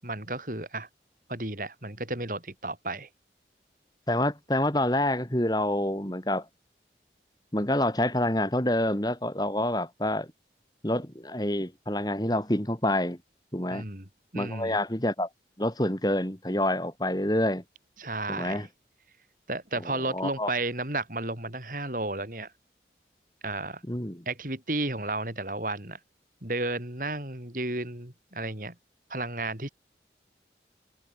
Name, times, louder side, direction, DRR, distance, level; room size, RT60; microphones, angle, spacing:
voice 1, 0.0-0.9 1.3-3.1 13.7-14.8 18.0-18.7 19.5-22.5 23.4-23.8 24.3-26.0 26.4-28.7 29.1-29.7, right 2 dB, 50° right, 6.1 m, -33 dB
voice 2, 4.1-6.4 7.5-10.3 10.8-13.2 13.5-13.8 14.3-15.3 15.6-17.6 18.3-18.7 20.1-20.5 23.9-24.2, left 1 dB, 20° left, 3.2 m, -27 dB
open air
head